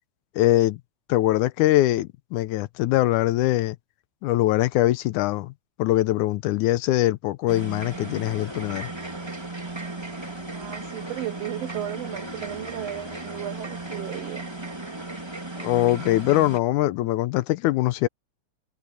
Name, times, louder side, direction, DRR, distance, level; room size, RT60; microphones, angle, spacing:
voice 1, 0.4-0.8 1.1-3.8 4.2-5.5 5.8-8.9 15.6-18.1, left 15 dB, 80° left, 2.0 m, -22 dB
sound 1, 7.5-16.6, right 2 dB, 10° right, 2.0 m, -36 dB
voice 2, 10.5-14.5, right 12 dB, 70° right, 1.5 m, -35 dB
omnidirectional pair, 3.8 m